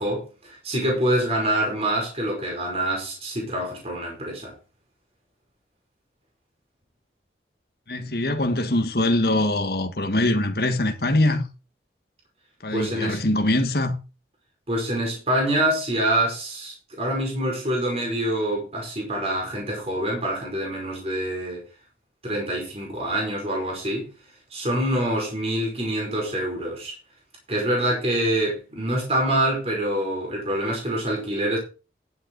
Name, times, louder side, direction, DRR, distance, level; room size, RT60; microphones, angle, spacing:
voice 1, 0.0-4.5 12.7-13.2 14.7-21.6 22.2-24.1 24.5-26.9 27.5-31.6, right 1 dB, 35° right, 5.1 m, -26 dB
voice 2, 7.9-11.4 12.6-14.0, left 1 dB, 60° left, 1.5 m, -23 dB
11.0 x 9.1 x 4.0 m
head